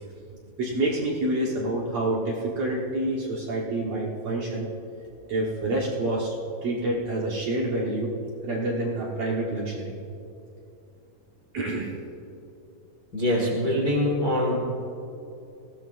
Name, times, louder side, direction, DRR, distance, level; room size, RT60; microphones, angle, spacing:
voice 1, 0.6-4.7 5.3-6.3 6.6-8.1 8.4-10.0 11.5-11.9, right 1 dB, 60° right, -4 dB, 2.0 m, -27 dB
voice 2, 13.1-14.6, left 1 dB, 40° left, -3 dB, 1.4 m, -24 dB
20.5 x 16.5 x 2.5 m, 2.8 s
omnidirectional pair, 4.4 m